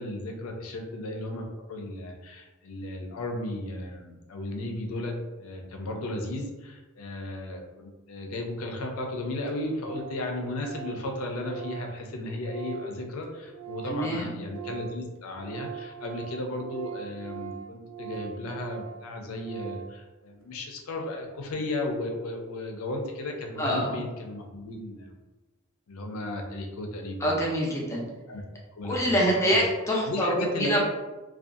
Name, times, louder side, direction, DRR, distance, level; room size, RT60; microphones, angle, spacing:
voice 1, 0.0-25.1 25.9-27.5 28.3-28.4 28.8-29.6 30.0-30.8, left 1 dB, 70° left, 3 dB, 0.5 m, -35 dB
Organ, 9.2-9.3 9.5-9.6 9.8-10.2 10.5-14.1 14.4-20.0, right 10 dB, 65° right, 0.4 m, -42 dB
voice 2, 13.9-14.4 23.6-24.0 27.2-28.0 28.8-30.8, equal, 15° left, -3 dB, 0.5 m, -25 dB
2.6 x 2.3 x 2.4 m, 1.2 s
head